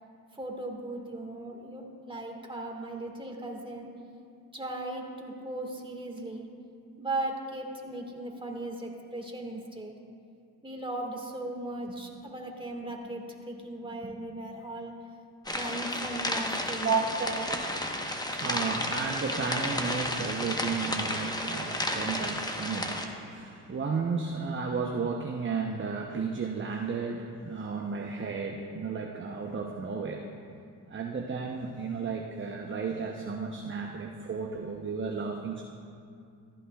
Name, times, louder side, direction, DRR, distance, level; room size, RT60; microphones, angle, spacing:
voice 1, 0.3-3.9 4.5-6.5 7.0-9.9 10.6-15.0 15.5-17.1, right 2 dB, 10° right, 1 dB, 1.8 m, -37 dB
sound 1, 15.5-23.1, left 1 dB, 10° left, 1.0 m, -32 dB
voice 2, 16.8-30.3 30.9-35.6, right 5 dB, 30° right, 2 dB, 0.8 m, -33 dB
14.5 x 11.0 x 2.4 m, 2.5 s
supercardioid pair, 55°, 42 cm